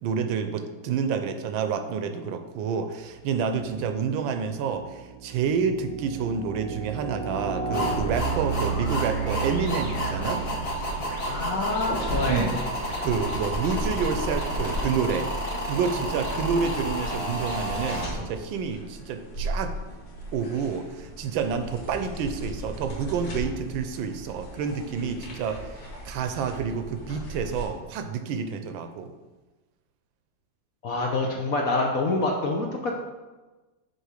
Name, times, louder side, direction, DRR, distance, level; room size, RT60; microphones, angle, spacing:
voice 1, 0.0-10.4 12.3-12.6 12.9-15.3 15.6-19.7 20.3-29.1, right 6 dB, 80° right, 8 dB, 1.4 m, -29 dB
movie logon, 3.6-3.8 4.4-11.3, right 5 dB, 10° left, 0.5 m, -32 dB
sound 1, 7.7-18.0, equal, 35° left, 1.5 m, -31 dB
voice 2, 11.3-12.7 30.8-33.0, left 2 dB, 60° left, 0 dB, 0.9 m, -26 dB
sound 2, 11.8-27.6, equal, 90° left, 3.0 m, -37 dB
6.4 x 4.9 x 4.9 m, 1.2 s
omnidirectional pair, 2.2 m